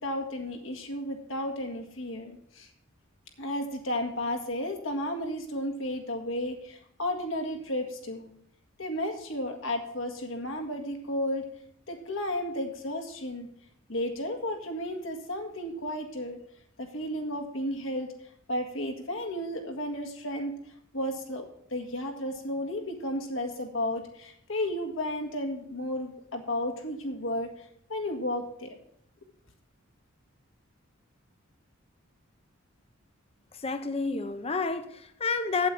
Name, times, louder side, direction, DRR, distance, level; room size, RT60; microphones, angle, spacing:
voice 1, 0.0-2.7 3.4-8.3 8.8-11.5 11.9-13.5 13.9-16.4 16.8-18.1 18.5-20.5 20.9-27.5 27.9-28.7, left 1 dB, 75° left, 4 dB, 1.9 m, -33 dB
voice 2, 33.6-35.7, left 4 dB, 30° left, 9 dB, 0.7 m, -29 dB
8.6 x 8.5 x 6.0 m, 0.69 s
head